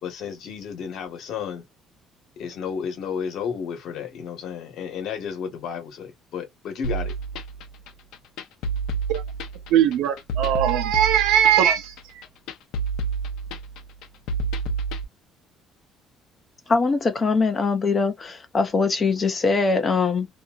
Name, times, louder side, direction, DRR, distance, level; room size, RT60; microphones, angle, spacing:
voice 1, 0.0-1.6 2.4-7.1, left 7 dB, 50° left, 1.2 m, -32 dB
sound 1, 6.8-15.0, right 4 dB, 70° left, 0.7 m, -29 dB
voice 2, 9.7-12.2, right 10 dB, 75° right, 0.7 m, -20 dB
voice 3, 16.7-20.3, left 4 dB, 20° left, 0.5 m, -22 dB
2.8 x 2.7 x 2.4 m
cardioid pair, 180°, 0 cm